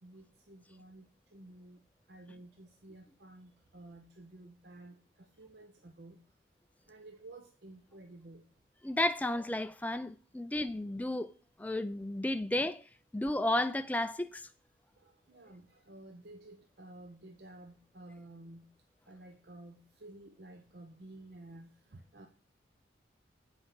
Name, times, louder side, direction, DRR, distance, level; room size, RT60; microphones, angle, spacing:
voice 1, 0.0-1.1 1.3-1.8 2.1-6.2 6.9-8.4 15.0-18.7 19.1-22.3, right 2 dB, 60° right, 0.8 m, -53 dB
voice 2, 8.8-11.3 11.6-12.8 13.1-14.5, left 1 dB, 10° left, 0.3 m, -32 dB
8.0 x 5.0 x 5.9 m
head